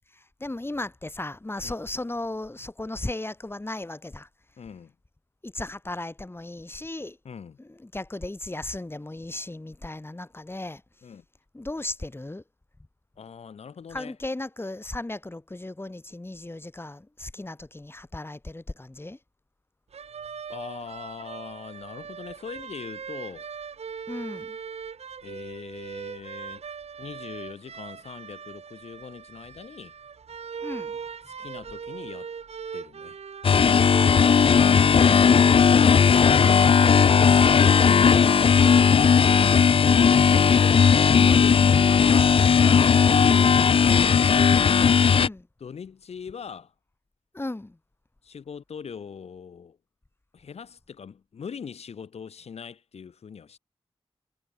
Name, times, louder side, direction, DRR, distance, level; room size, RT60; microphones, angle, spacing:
voice 1, 0.1-4.3 5.4-7.2 7.6-10.8 11.5-12.4 13.9-19.2 24.1-24.6 30.6-31.0 34.6-35.8 41.1-41.8 43.1-43.5 45.1-45.5 47.3-47.8, left 2 dB, 20° left, 5.9 m, -36 dB
voice 2, 4.6-4.9 7.2-7.6 11.0-11.2 13.2-14.2 20.5-23.5 25.2-26.6 27.0-29.9 31.3-32.3 32.7-33.2 37.0-39.4 39.7-40.1 40.5-42.4 43.6-45.0 45.6-46.7 48.2-49.8 50.3-53.6, left 6 dB, 85° left, 2.1 m, -41 dB
sound 1, 19.9-38.5, right 6 dB, 85° right, 4.2 m, -40 dB
sound 2, 33.4-45.3, left 6 dB, 60° left, 0.5 m, -17 dB
wide cardioid pair, 75°, 11 cm